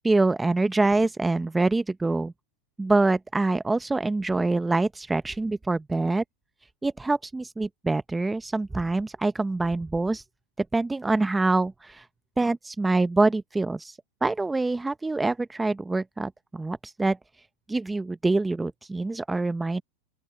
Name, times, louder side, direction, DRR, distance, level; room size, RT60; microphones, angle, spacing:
voice 1, 0.0-2.3 2.8-6.2 6.8-10.2 10.6-12.1 12.4-17.2 17.7-19.8, right 2 dB, 10° right, 0.8 m, -25 dB
open air
hypercardioid pair, 110°, 0 cm